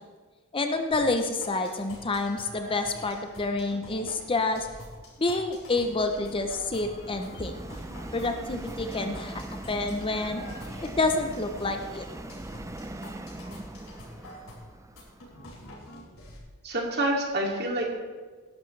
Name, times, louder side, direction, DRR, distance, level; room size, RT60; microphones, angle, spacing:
voice 1, 0.5-4.7 5.2-7.5 8.1-9.4 9.7-10.4 10.8-12.0, left 3 dB, 25° left, 6 dB, 0.7 m, -28 dB
sound 1, 0.9-16.4, left 1 dB, 70° left, 4.0 m, -46 dB
Subway metro underground, 4.4-15.7, right 1 dB, 15° right, 0.5 m, -42 dB
voice 2, 16.6-17.9, right 1 dB, 45° right, 0 dB, 2.6 m, -27 dB
18.5 x 11.5 x 3.3 m, 1.4 s
head